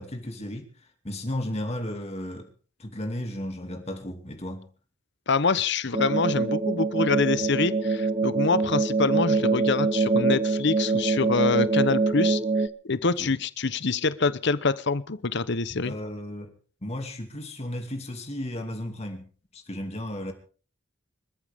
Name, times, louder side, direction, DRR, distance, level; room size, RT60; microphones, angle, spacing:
voice 1, 0.0-2.5 2.8-4.7 13.2-13.4 15.8-16.5 16.8-20.3, left 1 dB, 30° left, 2.5 m, -34 dB
voice 2, 5.3-12.4 12.8-15.9, left 4 dB, 60° left, 0.9 m, -25 dB
sound 1, 5.9-12.7, right 3 dB, 25° right, 0.8 m, -24 dB
25.5 x 14.0 x 3.6 m
head